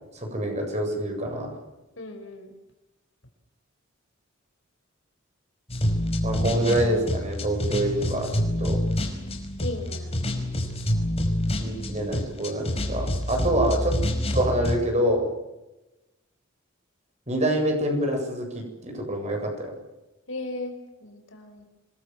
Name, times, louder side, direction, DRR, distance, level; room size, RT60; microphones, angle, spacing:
voice 1, 0.1-1.6 6.2-8.8 11.6-14.0 14.3-15.2 17.3-19.7, right 1 dB, 35° right, 3 dB, 7.9 m, -26 dB
voice 2, 2.0-2.5 9.6-10.2 20.3-21.6, left 2 dB, 65° left, 5 dB, 5.4 m, -36 dB
sound 1, 5.7-14.8, left 1 dB, 30° left, 5.1 m, -27 dB
27.5 x 22.0 x 7.6 m, 1.0 s
head